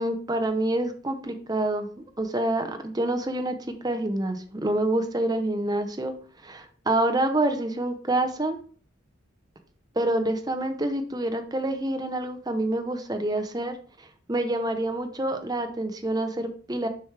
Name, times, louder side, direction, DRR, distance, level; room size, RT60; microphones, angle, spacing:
voice 1, 0.0-3.6 3.8-6.1 6.4-8.6 10.0-16.9, right 1 dB, 20° right, 7 dB, 0.7 m, -27 dB
6.8 x 6.0 x 3.3 m, 0.43 s
head